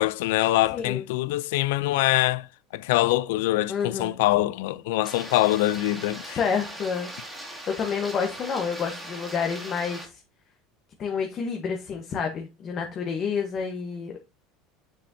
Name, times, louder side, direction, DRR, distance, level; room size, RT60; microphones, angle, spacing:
voice 1, 0.0-2.5 2.7-6.4, left 16 dB, 80° left, 0.4 m, -24 dB
voice 2, 0.7-1.0 3.7-4.1 6.3-7.1 7.7-10.2 11.0-14.1, left 6 dB, 35° left, 1.1 m, -29 dB
sound 1, 5.0-10.1, right 1 dB, 10° right, 2.1 m, -40 dB
6.8 x 6.4 x 2.7 m
supercardioid pair, 130°, 0 cm